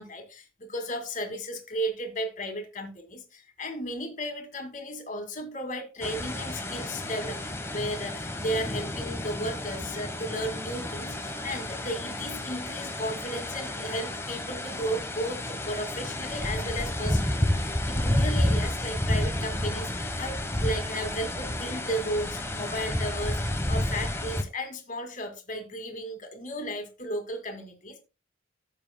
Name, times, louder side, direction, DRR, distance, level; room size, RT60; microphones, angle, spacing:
voice 1, 0.0-28.0, equal, 45° left, 2.2 m, -34 dB
sound 1, 6.0-24.4, left 1 dB, 15° left, 1.1 m, -30 dB
15.0 x 7.4 x 2.2 m
head